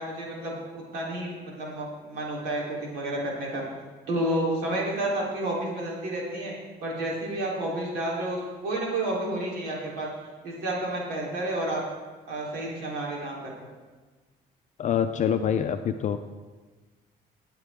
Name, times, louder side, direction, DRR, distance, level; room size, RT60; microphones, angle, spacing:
voice 1, 0.0-3.6 4.1-6.5 6.8-10.1 10.4-11.8 12.3-13.5, right 1 dB, 85° right, -3 dB, 3.6 m, -30 dB
voice 2, 14.8-16.2, left 8 dB, 45° left, 8 dB, 0.5 m, -25 dB
18.5 x 7.6 x 3.7 m, 1.3 s
cardioid pair, 110°, 17 cm